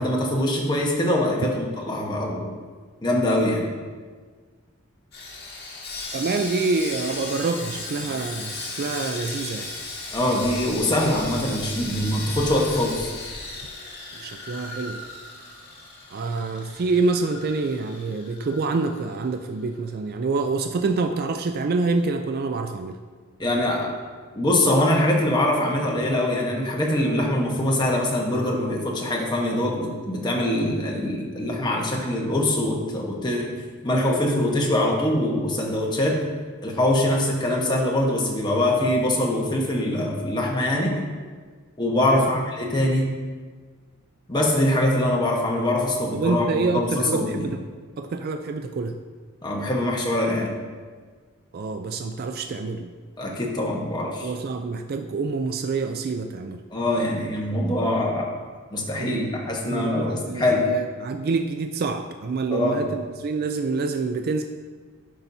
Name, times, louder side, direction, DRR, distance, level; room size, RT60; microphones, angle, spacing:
voice 1, 0.0-2.5 3.0-3.6 10.1-13.1 23.4-23.9 24.3-33.5 33.8-36.2 36.6-41.0 41.8-43.1 44.3-46.5 46.7-47.5 49.4-50.5 53.2-54.3 56.7-58.3 58.7-60.7 62.5-62.8, left 1 dB, 20° left, -2 dB, 1.1 m, -23 dB
Sawing, 5.1-19.4 19.6-19.8 20.3-20.4, left 3 dB, 50° left, 1.8 m, -36 dB
voice 2, 6.1-9.7 14.2-15.1 16.1-23.0 42.1-42.3 46.1-47.6 48.0-49.0 51.5-52.9 54.2-56.6 59.0-59.3 59.6-64.4, right 3 dB, 45° right, 6 dB, 0.3 m, -27 dB
11.5 x 5.5 x 2.7 m, 1.5 s
head